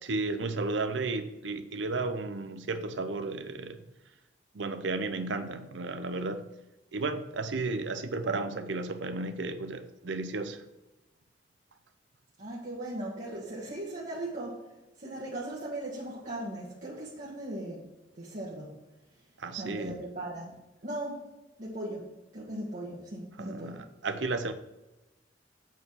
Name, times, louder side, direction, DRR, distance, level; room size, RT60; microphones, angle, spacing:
voice 1, 0.0-3.8 4.5-6.5 6.9-10.6 19.4-20.1 23.4-24.5, right 3 dB, 85° right, 0.7 m, -33 dB
voice 2, 12.4-14.7 15.0-17.8 18.1-18.7 19.5-20.5 20.8-21.3 21.6-23.9, right 1 dB, 45° right, 1.5 m, -38 dB
8.2 x 4.6 x 6.3 m
head